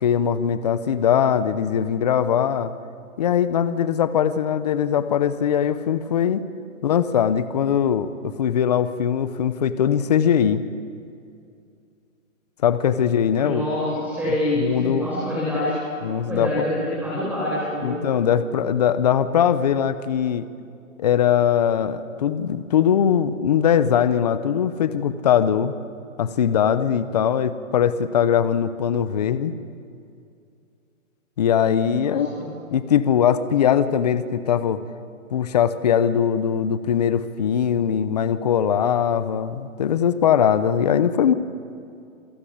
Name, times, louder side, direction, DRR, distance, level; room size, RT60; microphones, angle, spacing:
voice 1, 0.0-2.7 3.2-6.4 6.8-10.6 12.6-13.6 14.6-15.1 16.0-16.7 17.8-20.5 21.0-25.7 26.2-29.5 31.4-32.3 32.7-34.8 35.3-41.3, left 8 dB, 30° left, 13 dB, 0.8 m, -21 dB
voice 2, 13.4-15.8 16.3-17.9 32.0-32.5, left 1 dB, 5° right, -9 dB, 6.7 m, -26 dB
27.0 x 18.0 x 8.7 m, 2.4 s
hypercardioid pair, 165°, 40 cm